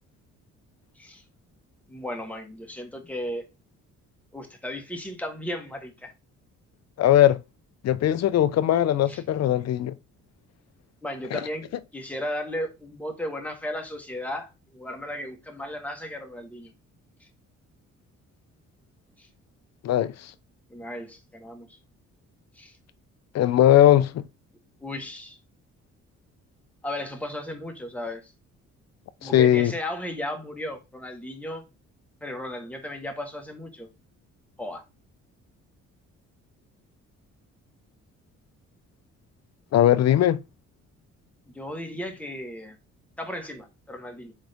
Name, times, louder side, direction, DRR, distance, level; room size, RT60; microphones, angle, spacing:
voice 1, 1.9-3.5 4.3-6.1 9.1-9.2 11.0-11.7 11.9-16.7 17.2-17.3 19.2-19.3 20.7-21.8 22.5-22.8 24.8-25.4 26.8-28.3 29.2-31.6 32.2-33.9 34.6-34.8 41.5-42.8 43.2-44.3, left 1 dB, 5° left, 1.3 m, -35 dB
voice 2, 7.0-7.4 7.8-9.9 11.3-11.4 19.8-20.3 23.3-24.2 29.2-29.7 39.7-40.4, left 12 dB, 60° left, 0.6 m, -19 dB
4.1 x 3.6 x 3.5 m
cardioid pair, 90°, 30 cm